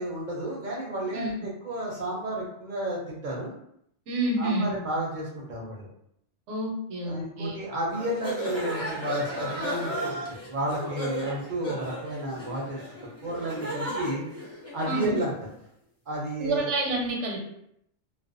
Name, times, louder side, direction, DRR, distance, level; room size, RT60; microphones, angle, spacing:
voice 1, 0.0-3.5 4.4-5.9 7.0-12.8 13.2-14.2 14.7-15.3 16.1-16.7, right 1 dB, 55° right, -3 dB, 0.5 m, -32 dB
voice 2, 4.1-4.7 6.5-7.6 14.9-15.2 16.4-17.4, right 2 dB, 80° right, 1 dB, 0.9 m, -28 dB
sound 1, 7.9-15.4, equal, 15° left, 0.6 m, -34 dB
2.4 x 2.1 x 2.4 m, 0.73 s
omnidirectional pair, 1.2 m